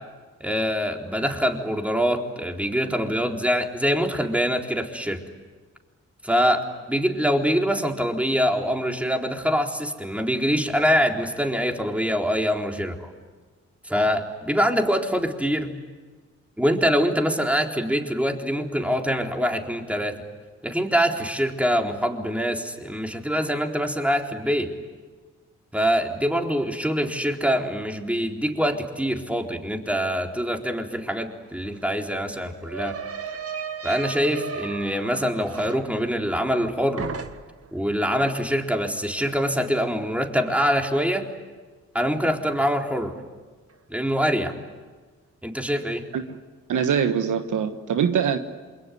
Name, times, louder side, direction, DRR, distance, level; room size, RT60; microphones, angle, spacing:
voice 1, 0.4-5.2 6.2-13.1 13.8-15.7 16.6-20.2 20.6-24.7 25.7-33.0 33.8-37.0 37.7-41.3 41.9-43.1 43.9-44.5 45.4-46.0, equal, 5° right, 2 dB, 4.0 m, -24 dB
sound 1, 31.1-31.2 31.4-36.7 37.0-37.7, right 6 dB, 50° right, 1.8 m, -36 dB
voice 2, 46.7-48.4, right 7 dB, 70° right, 8 dB, 1.4 m, -23 dB
28.0 x 22.0 x 9.5 m, 1.4 s
supercardioid pair, 45°, 31 cm